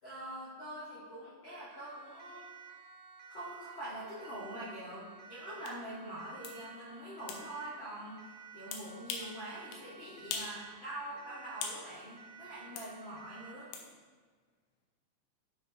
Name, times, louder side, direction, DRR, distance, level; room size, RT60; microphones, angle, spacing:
voice 1, 0.0-2.4 3.3-8.2 8.5-13.7, right 1 dB, 60° left, -9 dB, 1.3 m, -44 dB
Siren, 1.7-13.7, right 6 dB, 90° right, 3.3 m, -53 dB
sound 1, 5.7-5.8 6.4-6.6 7.3-7.4 8.7-9.3 9.7-9.9 10.3-10.6 10.9-11.8 12.8-12.9 13.7-13.9, left 5 dB, 75° left, 2.9 m, -41 dB
11.5 x 7.8 x 3.0 m, 1.5 s
omnidirectional pair, 5.3 m